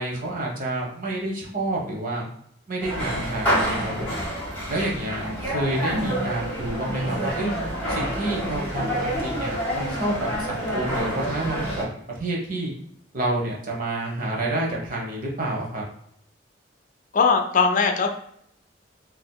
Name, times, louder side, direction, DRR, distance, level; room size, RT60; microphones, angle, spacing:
voice 1, 0.0-2.2 2.7-4.1 4.7-7.5 7.9-12.7 13.1-15.8, right 1 dB, 50° right, -2 dB, 0.9 m, -29 dB
sound 1, 2.8-11.8, equal, 10° left, 1.4 m, -28 dB
voice 2, 17.1-18.1, left 5 dB, 45° left, 4 dB, 0.4 m, -19 dB
3.7 x 2.8 x 2.2 m, 0.69 s
head